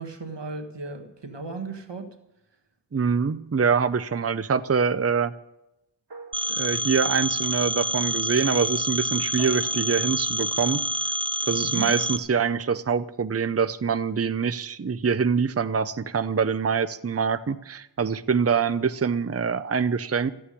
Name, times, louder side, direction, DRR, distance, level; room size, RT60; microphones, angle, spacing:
voice 1, 0.0-2.2 11.6-11.9, right 3 dB, 90° right, 5 dB, 1.6 m, -35 dB
voice 2, 2.9-5.3 6.5-10.8 11.5-20.3, right 6 dB, 35° right, 13 dB, 0.6 m, -24 dB
sound 1, 6.1-7.1 9.4-10.2, right 3 dB, 65° right, 1.8 m, -46 dB
Telephone, 6.3-12.2, equal, 10° right, 0.9 m, -27 dB
14.5 x 8.5 x 9.9 m, 0.91 s
wide cardioid pair, 50°, 41 cm